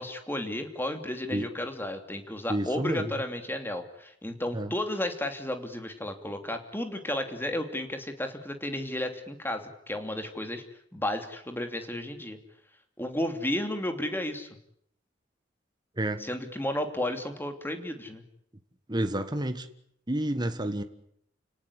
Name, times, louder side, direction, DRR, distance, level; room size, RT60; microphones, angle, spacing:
voice 1, 0.0-10.6 10.9-12.4 13.0-14.5 16.2-18.2, left 1 dB, 10° left, 6 dB, 2.9 m, -33 dB
voice 2, 2.5-3.1 4.5-4.7 16.0-16.3 18.9-19.7 20.1-20.8, right 1 dB, 20° right, 8 dB, 1.5 m, -29 dB
30.0 x 18.5 x 10.0 m, 0.72 s
head